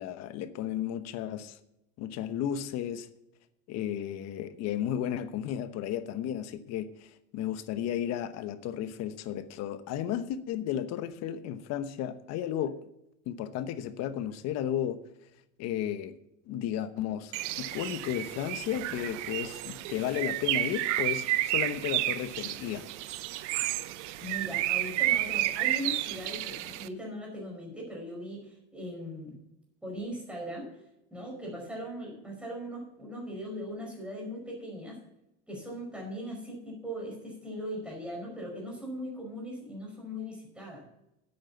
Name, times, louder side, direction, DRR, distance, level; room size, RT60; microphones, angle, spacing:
voice 1, 0.0-1.6 2.0-3.1 3.7-7.1 7.3-12.8 13.3-15.0 15.6-16.2 16.5-22.9, left 10 dB, 50° left, 1.0 m, -33 dB
Bird, 17.3-26.9, right 15 dB, 90° right, 0.8 m, -31 dB
voice 2, 24.2-29.4 29.8-30.7 31.1-35.0 35.5-40.8, equal, 5° right, 5.0 m, -39 dB
9.9 x 8.8 x 6.9 m
cardioid pair, 145°, 35 cm